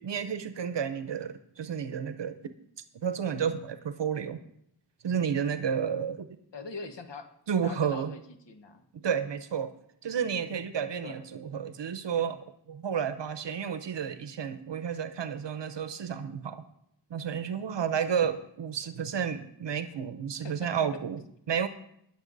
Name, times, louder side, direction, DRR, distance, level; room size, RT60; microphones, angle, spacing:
voice 1, 0.0-2.4 2.9-4.4 5.0-6.3 7.5-8.1 9.0-9.7 10.0-12.4 12.7-16.6 17.1-21.7, right 7 dB, 75° right, 11 dB, 0.8 m, -31 dB
voice 2, 6.5-7.3 7.6-8.2 8.5-8.8 11.0-11.3 20.4-20.7, left 4 dB, 70° left, 7 dB, 1.3 m, -42 dB
20.0 x 6.9 x 4.0 m, 0.73 s
wide cardioid pair, 100°, 44 cm